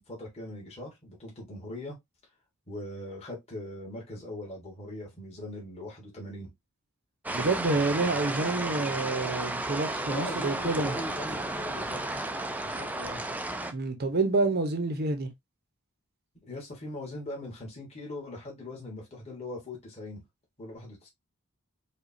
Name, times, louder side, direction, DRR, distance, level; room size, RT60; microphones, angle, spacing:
voice 1, 0.0-2.0 2.7-6.5 10.0-12.2 12.6-13.2 16.4-20.2 20.6-21.1, left 1 dB, 30° left, 1.5 m, -40 dB
sound 1, 7.3-13.7, right 2 dB, 5° right, 0.4 m, -33 dB
voice 2, 7.3-11.0 13.7-15.3, right 3 dB, 45° right, 0.7 m, -28 dB
5.0 x 2.3 x 2.6 m
head